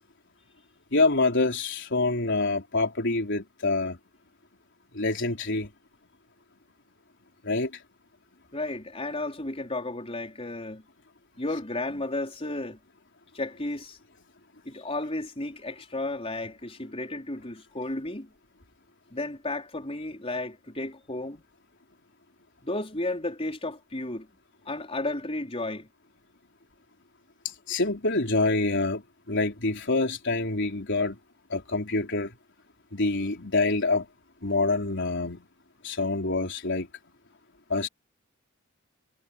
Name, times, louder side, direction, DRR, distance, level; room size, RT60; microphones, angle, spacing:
voice 1, 0.9-4.0 4.9-5.7 7.4-7.8 27.4-31.2 31.5-32.3 32.9-34.1 34.4-35.5 35.8-36.9 37.7-37.9, left 3 dB, 60° left, 4.1 m, -26 dB
voice 2, 8.5-10.8 11.4-12.8 13.3-14.0 14.6-18.3 19.1-21.4 22.6-24.3 24.7-25.9, left 2 dB, 30° left, 4.4 m, -33 dB
head